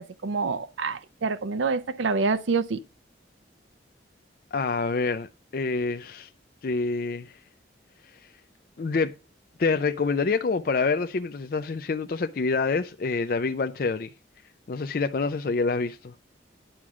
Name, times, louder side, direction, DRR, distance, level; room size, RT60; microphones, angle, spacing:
voice 1, 0.0-2.8, right 4 dB, 85° right, 0.5 m, -27 dB
voice 2, 4.5-6.3 6.6-7.4 8.2-8.3 8.8-9.1 9.6-14.1 14.7-16.1, left 4 dB, 50° left, 0.4 m, -27 dB
10.0 x 6.2 x 4.8 m
head